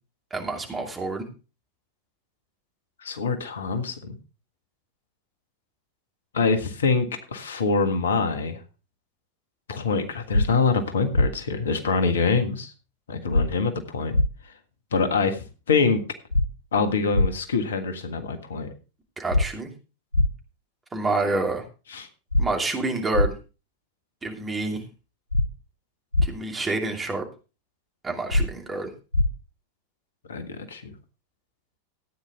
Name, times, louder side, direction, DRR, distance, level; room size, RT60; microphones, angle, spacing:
voice 1, 0.3-1.3 19.2-19.7 20.9-21.6 22.4-23.3 24.2-24.8 26.2-27.2 28.0-28.9, right 2 dB, 15° right, 2 dB, 2.7 m, -28 dB
voice 2, 3.0-4.2 6.3-8.6 9.7-12.7 13.1-14.2 14.9-15.4 15.7-16.0 16.7-18.7 21.9-22.1 30.3-30.9, left 4 dB, 65° left, 8 dB, 1.6 m, -25 dB
sound 1, 10.3-10.5 11.1-11.3 13.3-13.5 14.1-14.3 16.3-16.5 17.1-17.3 19.3-19.4 20.1-20.3 22.3-22.5 23.1-23.3 25.3-25.5 26.1-26.3 28.3-28.5 29.1-29.3, left 2 dB, 85° left, 0.5 m, -20 dB
14.0 x 9.5 x 3.6 m, 0.33 s
figure-of-eight pair, 90°, 0 cm